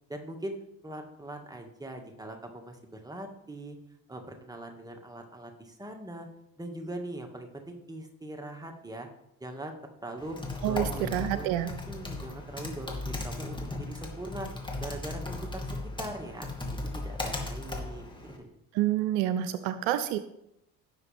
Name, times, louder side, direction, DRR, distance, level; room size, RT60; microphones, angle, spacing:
voice 1, 0.1-0.5 0.8-3.8 4.1-6.3 6.6-9.1 9.4-9.8 10.0-10.4 10.7-11.5 11.9-14.5 14.8-16.5 16.9-18.5, right 1 dB, 10° right, 3 dB, 2.1 m, -41 dB
Typing, 10.2-18.4, left 2 dB, 10° left, 2.6 m, -37 dB
voice 2, 10.6-11.7 18.7-20.2, right 12 dB, 70° right, 12 dB, 0.7 m, -28 dB
16.5 x 6.5 x 3.6 m, 0.81 s
hypercardioid pair, 55°, 41 cm